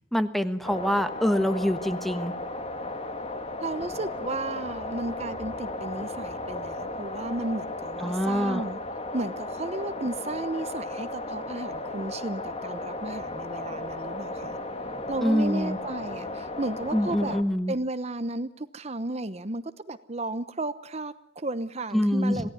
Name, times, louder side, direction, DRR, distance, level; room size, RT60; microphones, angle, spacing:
voice 1, 0.1-2.3 8.0-8.6 15.2-15.8 16.9-17.7 21.9-22.5, equal, ahead, 10 dB, 1.3 m, -25 dB
sound 1, 0.6-17.4, left 2 dB, 30° left, 2.0 m, -35 dB
voice 2, 3.6-8.8 9.1-14.6 15.1-17.4 17.7-22.5, right 2 dB, 35° right, 11 dB, 0.9 m, -34 dB
27.5 x 17.5 x 9.5 m, 0.72 s
head